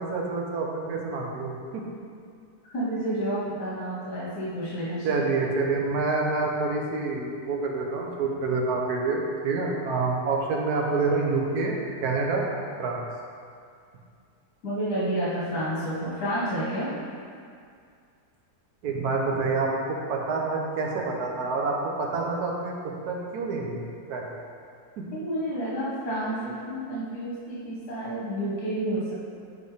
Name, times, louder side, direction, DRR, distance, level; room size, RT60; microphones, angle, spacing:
voice 1, 0.0-1.8 5.0-12.5 12.8-13.0 18.8-22.8 23.1-23.8 24.1-24.3 25.0-25.1, right 3 dB, 75° right, -1 dB, 1.4 m, -27 dB
voice 2, 2.7-5.2 14.6-16.9 25.1-29.2, right 1 dB, 75° left, -9 dB, 1.9 m, -30 dB
7.1 x 4.4 x 4.9 m, 2.3 s
omnidirectional pair, 1.7 m